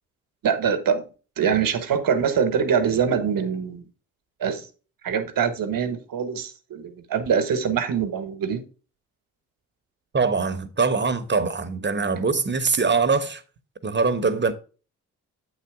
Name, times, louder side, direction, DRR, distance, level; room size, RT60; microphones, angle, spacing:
voice 1, 0.4-1.1 1.4-3.8 4.4-4.7 5.0-8.6, right 7 dB, 60° right, 1.3 m, -24 dB
voice 2, 10.1-13.4 13.8-14.5, right 4 dB, 30° right, 1.1 m, -23 dB
8.2 x 4.1 x 4.8 m
hypercardioid pair, 45°, 38 cm